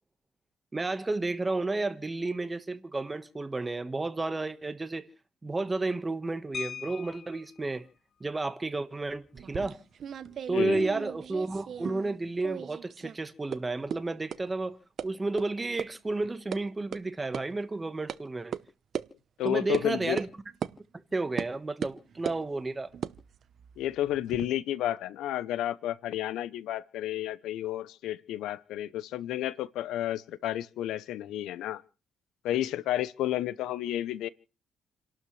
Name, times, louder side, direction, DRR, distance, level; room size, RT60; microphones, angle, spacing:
voice 1, 0.7-5.0 5.4-7.9 8.2-9.8 10.5-14.8 15.0-18.5 19.4-20.3 21.1-22.9, right 3 dB, 20° right, 1.4 m, -32 dB
sound 1, 6.5-7.6 9.1-9.2 9.5-9.7 10.1-10.4, left 7 dB, 55° left, 1.6 m, -41 dB
sound 2, 9.3-12.2 12.4-13.2 13.5-13.6 13.9-14.0 14.3-14.4 15.0-15.1 15.4-15.5 15.8-15.9 16.2-16.6 16.9-17.0 17.3-17.4 18.1-18.2 18.5-18.6 18.9-19.1 19.7-19.9 20.2-20.3 20.6-20.7 21.4-21.5 21.8-22.4 22.9-24.5, right 8 dB, 60° right, 0.9 m, -36 dB
voice 2, 10.5-10.9 19.4-20.2 23.8-31.8 32.4-34.3, left 13 dB, 90° left, 0.7 m, -31 dB
29.5 x 12.0 x 3.3 m
cardioid pair, 90°, 0 cm